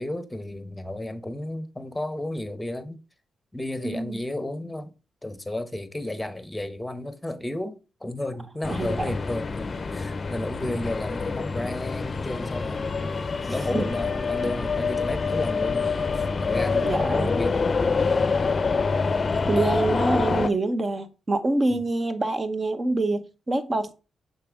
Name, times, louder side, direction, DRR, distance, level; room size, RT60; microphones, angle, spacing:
voice 1, 0.0-3.0 3.5-4.9 5.2-17.8 21.7-21.8, left 1 dB, 10° left, 1.0 m, -33 dB
voice 2, 3.8-4.2 8.7-9.1 13.4-13.9 16.8-17.3 19.5-23.9, right 2 dB, 35° right, 1.0 m, -26 dB
sound 1, 8.6-20.5, left 4 dB, 45° left, 0.5 m, -26 dB
6.7 x 4.1 x 3.6 m
supercardioid pair, 50°, 0 cm